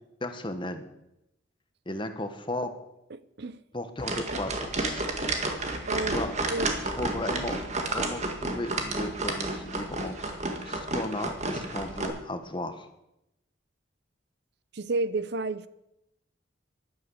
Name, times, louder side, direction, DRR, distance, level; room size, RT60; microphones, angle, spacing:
voice 1, 0.2-0.8 1.9-2.7 3.7-5.0 6.0-6.4 6.7-10.4 10.7-12.9, left 1 dB, 25° left, 8 dB, 1.2 m, -35 dB
voice 2, 3.1-3.6 5.9-6.2 6.5-6.7 14.7-15.7, right 3 dB, 60° right, 16 dB, 0.6 m, -31 dB
sound 1, 4.0-12.1, right 2 dB, 35° right, 2.0 m, -31 dB
12.0 x 11.5 x 7.9 m, 0.87 s
head